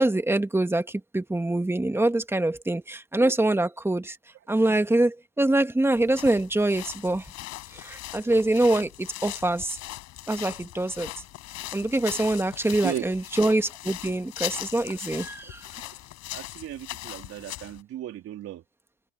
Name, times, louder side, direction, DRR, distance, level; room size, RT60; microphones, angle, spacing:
voice 1, 0.0-4.2 4.5-7.3 7.7-9.8 10.3-11.1 11.7-15.6, right 2 dB, 10° right, 2.0 m, -24 dB
sound 1, 5.9-17.8, left 17 dB, 65° left, 5.5 m, -39 dB
voice 2, 16.3-18.6, right 11 dB, 50° right, 3.7 m, -36 dB
supercardioid pair, 90°, 30 cm